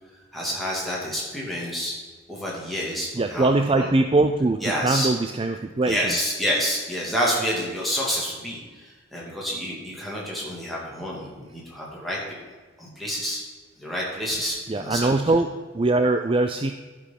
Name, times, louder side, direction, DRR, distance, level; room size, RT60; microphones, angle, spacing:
voice 1, 0.3-1.9 2.3-3.9 4.6-5.1 5.8-12.2 12.8-13.4 13.8-15.1, equal, ahead, -5 dB, 2.5 m, -28 dB
voice 2, 3.1-6.1 14.7-16.7, right 2 dB, 25° right, 7 dB, 0.4 m, -22 dB
11.0 x 6.1 x 5.9 m, 1.4 s
head